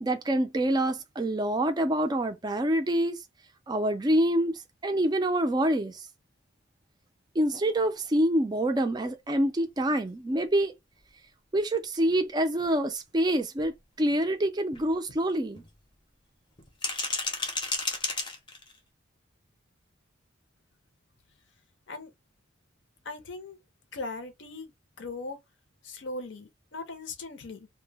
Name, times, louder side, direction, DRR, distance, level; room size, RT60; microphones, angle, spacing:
voice 1, 0.0-3.2 3.7-6.0 7.4-10.7 11.5-15.6, right 1 dB, 20° right, 0.4 m, -26 dB
sound 1, 11.0-11.1 11.6-11.7 12.1-12.2 12.6-12.7 13.1-13.2 13.6-13.7 14.1-14.3 14.7-15.7 16.6-18.8, left 3 dB, 25° left, 0.6 m, -33 dB
voice 2, 23.0-23.6 23.9-24.7 25.0-25.4 25.8-27.7, left 3 dB, 60° left, 0.6 m, -39 dB
2.1 x 2.1 x 3.2 m
head